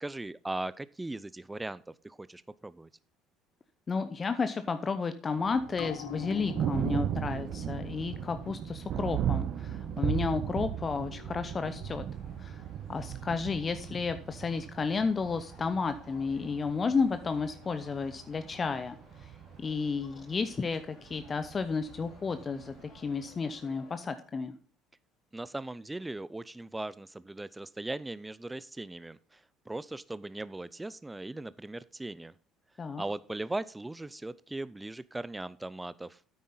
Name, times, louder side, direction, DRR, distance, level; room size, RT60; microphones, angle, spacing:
voice 1, 0.0-2.9 25.3-32.3 33.0-36.2, right 2 dB, 15° right, 18 dB, 0.4 m, -39 dB
voice 2, 3.9-12.0 12.4-12.6 12.9-19.3 19.6-24.5 32.8-33.0, left 4 dB, 35° left, 10 dB, 0.7 m, -32 dB
Thunder, 5.4-23.3, right 10 dB, 55° right, 0.7 m, -37 dB
sound 1, 5.7-12.7 13.0-13.1, left 19 dB, 70° left, 0.5 m, -48 dB
sound 2, 11.6-23.9, left 4 dB, 55° left, 2.5 m, -58 dB
9.2 x 8.7 x 3.9 m, 0.40 s
hypercardioid pair, 65°, 0 cm